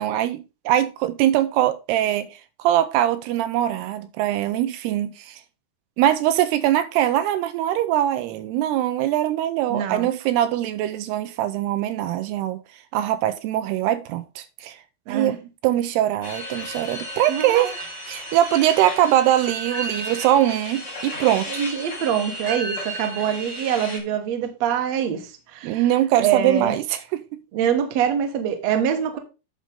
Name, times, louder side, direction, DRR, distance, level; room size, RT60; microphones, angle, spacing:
voice 1, 0.0-5.4 6.0-12.6 12.9-14.8 15.1-17.7 18.1-21.6 25.6-26.8 27.1-27.2, right 12 dB, 85° right, 2.5 m, -22 dB
voice 2, 9.7-10.1 15.1-15.3 17.3-17.7 18.8-18.9 21.5-25.9 26.2-26.8 27.5-29.2, right 8 dB, 65° right, 1.7 m, -24 dB
sound 1, 16.2-24.0, equal, 30° left, 2.7 m, -33 dB
9.1 x 6.3 x 3.7 m
omnidirectional pair, 4.8 m